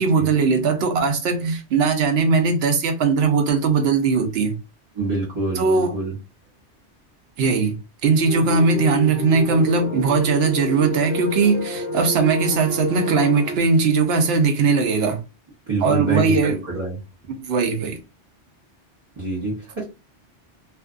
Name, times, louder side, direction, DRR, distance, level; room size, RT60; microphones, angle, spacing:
voice 1, 0.0-4.5 5.5-5.9 7.4-7.8 8.0-15.2 15.8-16.6 17.4-18.0, right 4 dB, 65° right, 0.8 m, -19 dB
voice 2, 4.9-6.1 15.7-16.9 19.2-19.8, right 3 dB, 25° right, 0.9 m, -26 dB
sound 1, 8.2-13.6, left 1 dB, 45° left, 0.6 m, -28 dB
2.5 x 2.4 x 2.4 m
omnidirectional pair, 1.2 m